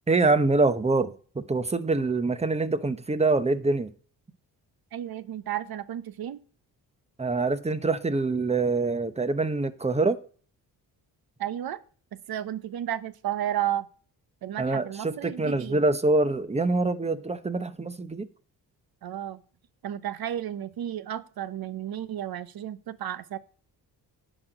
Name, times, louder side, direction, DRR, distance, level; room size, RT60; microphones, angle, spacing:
voice 1, 0.1-3.9 7.2-10.2 14.6-18.3, right 3 dB, 15° right, 0.9 m, -25 dB
voice 2, 4.9-6.4 11.4-11.8 12.3-13.9 14.4-15.8 19.0-19.4 19.8-23.4, right 11 dB, 65° right, 1.0 m, -32 dB
10.5 x 4.4 x 7.9 m
cardioid pair, 95°, 39 cm